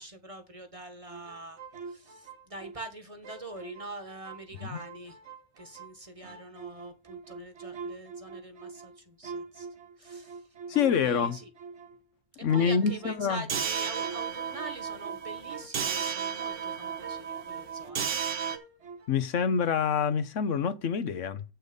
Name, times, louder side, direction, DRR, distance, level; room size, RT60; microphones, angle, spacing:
voice 1, 0.0-1.6 1.9-5.2 5.6-9.7 10.0-10.4 10.9-11.5 12.3-18.1, right 2 dB, 30° right, 1.5 m, -44 dB
sound 1, 1.1-2.9 3.2-5.9 6.2-12.1 12.5-18.2 18.5-19.3, right 4 dB, 65° right, 1.8 m, -45 dB
voice 2, 10.7-11.4 12.4-13.4 19.1-21.4, left 7 dB, 90° left, 1.3 m, -26 dB
sound 2, 13.5-18.6, right 7 dB, 80° right, 1.3 m, -33 dB
8.2 x 6.2 x 5.2 m
omnidirectional pair, 1.2 m